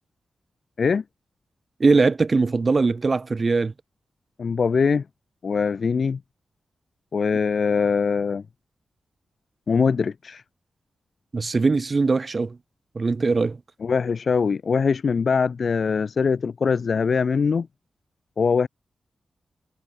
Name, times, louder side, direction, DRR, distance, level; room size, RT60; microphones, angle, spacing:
voice 1, 1.8-3.7 11.3-12.6 12.9-13.6, right 4 dB, 40° right, 2.6 m, -21 dB
voice 2, 4.4-5.0 5.4-6.2 7.1-8.4 9.7-10.4 13.8-17.7 18.4-18.7, left 5 dB, 60° left, 3.9 m, -22 dB
wide cardioid pair, 100°, 0 cm